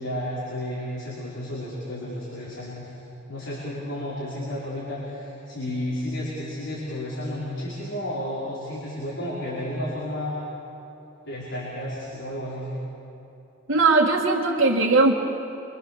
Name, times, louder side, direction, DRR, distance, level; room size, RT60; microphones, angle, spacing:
voice 1, 0.0-2.9 3.3-10.4 11.3-12.7, left 1 dB, 75° left, -8 dB, 5.7 m, -32 dB
voice 2, 13.7-15.2, right 3 dB, 65° right, -3 dB, 1.8 m, -19 dB
27.5 x 25.0 x 7.3 m, 3.0 s
head